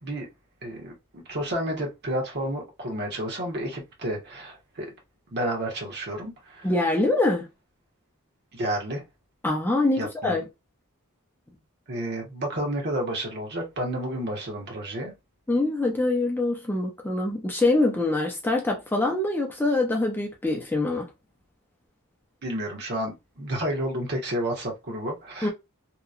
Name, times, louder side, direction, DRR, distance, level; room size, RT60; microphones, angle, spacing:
voice 1, 0.6-4.9 5.3-6.7 8.5-9.0 10.0-10.4 11.9-15.1 22.4-25.5, right 1 dB, 50° right, 1.0 m, -31 dB
voice 2, 6.6-7.5 9.4-10.4 15.5-21.1 25.4-25.5, left 2 dB, 10° left, 0.5 m, -24 dB
2.9 x 2.2 x 2.4 m
head